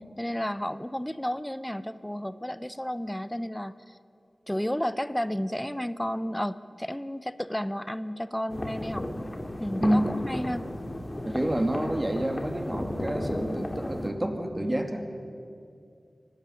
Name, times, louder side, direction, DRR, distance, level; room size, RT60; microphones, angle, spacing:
voice 1, 0.2-3.9 4.5-9.1 9.6-10.7, equal, 10° left, 14 dB, 0.7 m, -32 dB
sound 1, 8.5-14.1, left 1 dB, 35° left, 2.3 m, -34 dB
voice 2, 11.3-15.0, right 1 dB, 25° right, 5 dB, 2.4 m, -28 dB
24.5 x 12.5 x 9.8 m, 2.5 s
wide cardioid pair, 55°, 0 cm